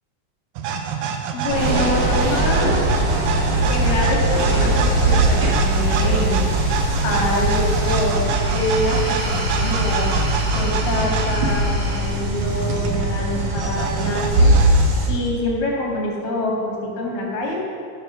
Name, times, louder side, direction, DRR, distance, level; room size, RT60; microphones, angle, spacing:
sound 1, 0.6-11.4 12.4-14.9, right 7 dB, 90° right, 2.5 m, -27 dB
voice 1, 1.3-2.8 3.6-6.5 7.0-10.2 10.6-14.5 15.1-17.6, left 1 dB, 80° left, -2 dB, 3.7 m, -25 dB
sound 2, 1.5-15.1, right 1 dB, 50° right, 1.8 m, -20 dB
13.5 x 5.9 x 6.2 m, 2.3 s
omnidirectional pair, 3.9 m